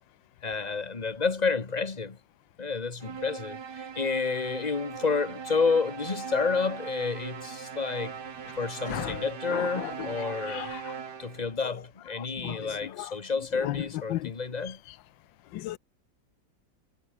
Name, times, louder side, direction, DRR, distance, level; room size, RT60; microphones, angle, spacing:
voice 1, 0.4-2.2 2.6-8.2 8.6-10.7 11.2-14.8, left 4 dB, 25° left, 1.4 m, -30 dB
sound 1, 3.0-11.5, right 7 dB, 65° right, 2.4 m, -40 dB
voice 2, 8.9-9.2 9.5-9.9 10.2-10.8 12.4-12.7 13.6-13.8 14.1-14.3 15.5-15.8, left 15 dB, 85° left, 1.4 m, -34 dB
omnidirectional pair, 2.0 m